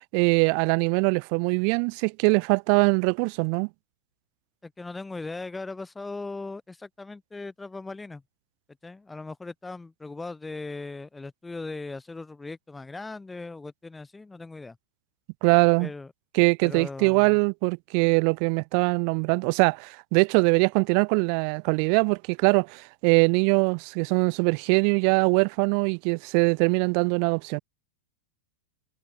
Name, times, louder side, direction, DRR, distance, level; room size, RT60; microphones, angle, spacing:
voice 1, 0.1-3.7 15.4-15.9 16.3-27.6, right 40 dB or more, 45° right, 0.9 m, -22 dB
voice 2, 4.6-8.2 8.8-14.8 15.8-16.1 16.6-17.4, left 3 dB, 10° left, 6.2 m, -38 dB
figure-of-eight pair, 95°, 0 cm